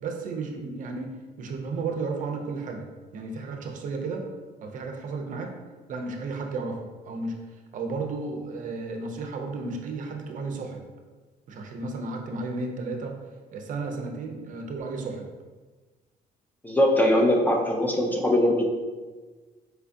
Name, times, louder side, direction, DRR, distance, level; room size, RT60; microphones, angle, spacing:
voice 1, 0.0-1.1 1.4-2.9 3.1-4.2 4.6-5.5 5.9-10.8 11.5-13.1 13.5-15.3, right 3 dB, 50° right, 3 dB, 0.5 m, -33 dB
voice 2, 16.6-18.6, left 1 dB, 10° left, 0 dB, 0.4 m, -21 dB
4.4 x 2.3 x 2.5 m, 1.3 s
cardioid pair, 110°, 17 cm